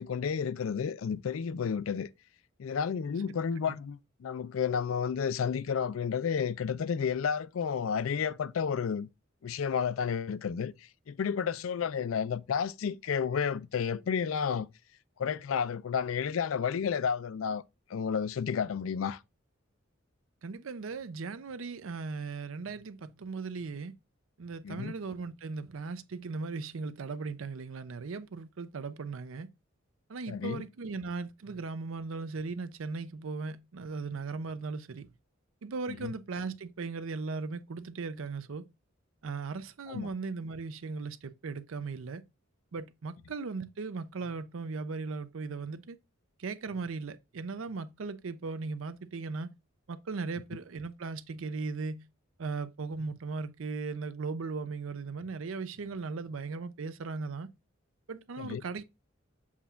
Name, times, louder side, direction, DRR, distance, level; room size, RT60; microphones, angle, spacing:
voice 1, 0.0-2.1 2.6-9.1 9.4-10.7 11.1-14.7 15.2-17.6 17.9-19.2 24.6-24.9 30.3-30.6 39.9-40.1 58.4-58.6, left 7 dB, 80° left, 0.4 m, -31 dB
voice 2, 20.4-23.9 24.4-29.5 30.1-35.1 35.6-38.7 39.2-42.2 42.7-46.0 46.4-49.5 49.9-52.0 52.4-57.5 58.1-58.8, right 4 dB, 80° right, 0.5 m, -38 dB
7.3 x 2.4 x 5.6 m
head